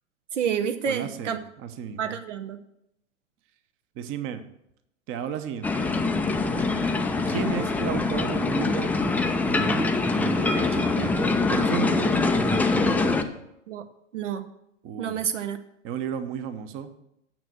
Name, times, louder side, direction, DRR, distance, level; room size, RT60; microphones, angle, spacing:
voice 1, 0.3-1.4 2.0-2.6 6.5-6.7 13.7-13.8 14.1-14.5 15.0-15.6, right 8 dB, 70° right, 9 dB, 0.9 m, -29 dB
voice 2, 0.9-2.1 4.0-4.4 5.1-5.9 7.3-8.9 9.4-13.2 14.8-15.3 15.8-16.9, right 9 dB, 35° right, 10 dB, 1.0 m, -34 dB
sound 1, 5.6-13.2, left 3 dB, 5° left, 0.4 m, -24 dB
9.1 x 6.5 x 6.3 m, 0.79 s
hypercardioid pair, 105°, 38 cm